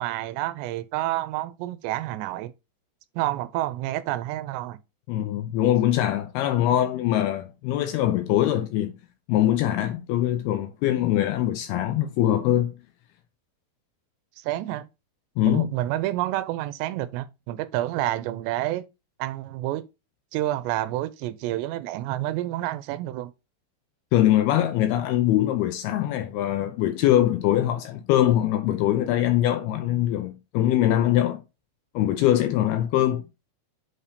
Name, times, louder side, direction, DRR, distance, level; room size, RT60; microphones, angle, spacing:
voice 1, 0.0-2.5 3.2-4.8 14.4-14.9 15.5-18.8 19.2-19.9 20.3-23.3, right 15 dB, 85° right, 2.8 m, -29 dB
voice 2, 5.1-9.0 9.3-12.7 15.4-15.7 24.1-31.4 32.0-33.2, left 12 dB, 80° left, 2.3 m, -22 dB
7.9 x 2.8 x 5.0 m
omnidirectional pair, 5.0 m